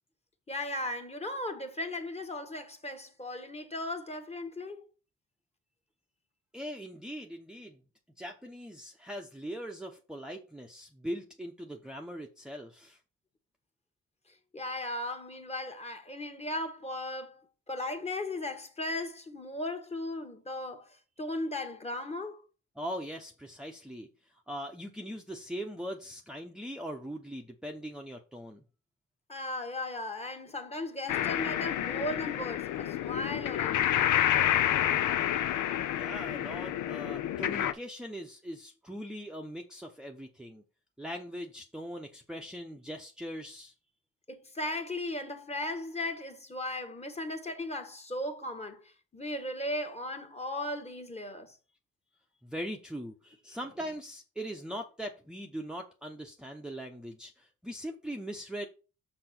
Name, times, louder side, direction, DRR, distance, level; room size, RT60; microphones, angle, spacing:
voice 1, 0.5-4.8 14.5-17.3 17.7-20.9 21.2-22.4 29.3-33.9 44.3-51.6, left 1 dB, 20° left, 1.4 m, -37 dB
voice 2, 6.5-7.8 8.2-13.0 22.8-28.6 35.6-40.6 41.0-43.7 52.4-58.7, equal, 5° right, 0.8 m, -41 dB
sound 1, 31.1-37.7, left 12 dB, 80° left, 0.7 m, -29 dB
6.0 x 6.0 x 4.4 m
cardioid pair, 90°, 30 cm